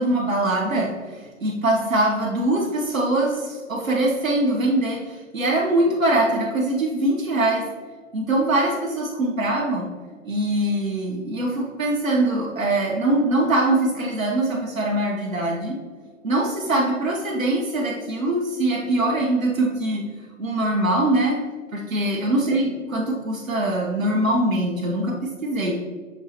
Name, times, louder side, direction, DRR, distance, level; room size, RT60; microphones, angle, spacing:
voice 1, 0.0-7.7 8.1-9.9 10.2-15.8 16.2-20.1 20.4-21.4 21.7-25.8, right 1 dB, 80° right, -3 dB, 0.8 m, -23 dB
6.2 x 3.0 x 2.8 m, 1.5 s
figure-of-eight pair, 125°, 40 cm